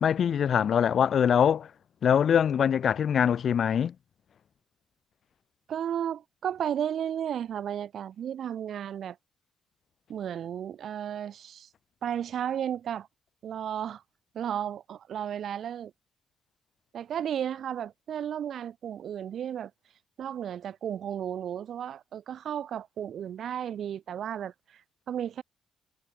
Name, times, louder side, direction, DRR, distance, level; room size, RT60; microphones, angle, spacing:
voice 1, 0.0-1.7 2.0-3.9, left 8 dB, 55° left, 0.7 m, -23 dB
voice 2, 5.7-9.2 10.1-11.7 12.0-13.1 13.4-14.0 14.3-15.9 16.9-19.7 20.2-24.8 25.1-25.4, right 9 dB, 65° right, 4.1 m, -33 dB
cardioid pair, 90°, 0 cm